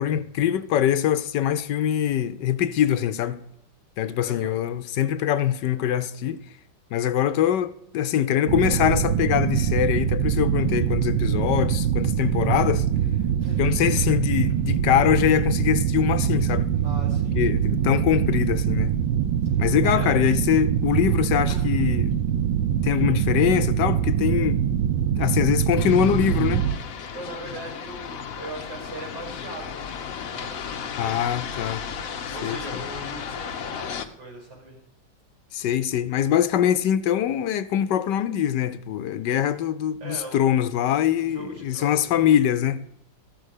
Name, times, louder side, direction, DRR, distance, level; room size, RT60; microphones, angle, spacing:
voice 1, 0.0-3.4 4.0-6.4 6.9-12.9 13.6-16.7 17.3-18.9 19.6-22.1 22.8-24.6 25.2-26.7 31.0-31.8 32.4-32.8 35.5-42.8, left 10 dB, 75° left, 1.2 m, -23 dB
voice 2, 4.2-4.6 13.4-13.7 16.8-17.4 19.8-20.2 21.5-21.7 27.1-31.6 32.3-34.8 40.0-40.5 41.2-42.3, right 2 dB, 70° right, 6.5 m, -40 dB
sound 1, 8.5-26.8, right 9 dB, 85° right, 1.6 m, -23 dB
sound 2, 25.8-34.1, left 7 dB, 55° left, 1.1 m, -34 dB
14.0 x 6.5 x 6.5 m
omnidirectional pair, 2.0 m